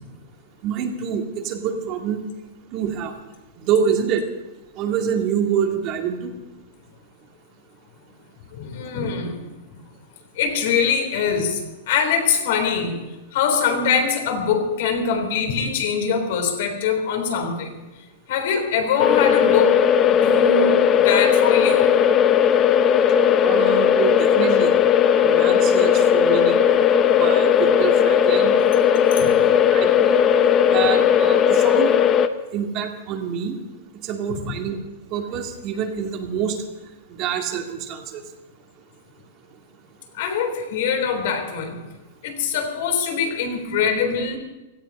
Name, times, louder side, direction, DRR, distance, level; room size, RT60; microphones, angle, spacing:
voice 1, 0.6-2.2 2.7-3.1 3.6-4.2 4.8-6.3 23.4-24.7 25.2-26.6 27.1-28.5 29.7-30.2 30.7-32.1 32.5-33.6 34.0-34.8 35.1-36.6 37.2-38.2, right 8 dB, 40° right, 3 dB, 2.3 m, -26 dB
voice 2, 8.5-9.4 10.4-13.1 13.3-17.8 18.3-22.0 29.1-29.6 40.1-41.8 42.2-44.4, left 6 dB, 65° left, 5 dB, 3.5 m, -23 dB
sound 1, 19.0-32.3, left 8 dB, 25° left, 0.9 m, -17 dB
17.0 x 14.5 x 5.4 m, 1.1 s
supercardioid pair, 140°, 0 cm